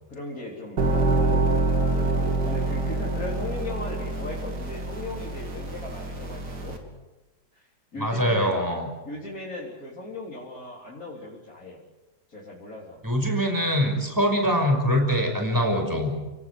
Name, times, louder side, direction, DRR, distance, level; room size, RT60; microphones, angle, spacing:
voice 1, 0.1-0.9 1.1-1.5 1.9-6.8 7.5-7.7 7.9-8.6 9.0-11.8 12.3-13.0, left 2 dB, 55° left, -5 dB, 4.4 m, -38 dB
sound 1, 0.8-6.8, right 2 dB, 70° right, 3.7 m, -26 dB
voice 2, 8.0-8.9 13.0-16.1, equal, 10° right, 3 dB, 5.8 m, -23 dB
29.5 x 18.5 x 7.9 m, 1.1 s
omnidirectional pair, 1.9 m